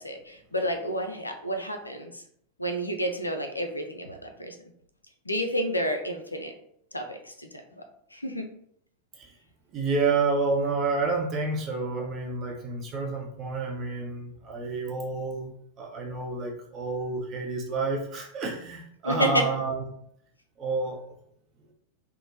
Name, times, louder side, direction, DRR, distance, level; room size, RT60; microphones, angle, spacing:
voice 1, 0.0-2.2 2.6-4.6 5.3-6.5 6.9-7.5 7.8-7.9 8.1-8.5 19.0-19.5, equal, 85° left, 6 dB, 0.3 m, -30 dB
voice 2, 9.7-19.8 20.6-21.1, right 3 dB, 30° right, 0 dB, 0.6 m, -29 dB
2.9 x 2.0 x 2.6 m, 0.70 s
figure-of-eight pair, 90°, 0 cm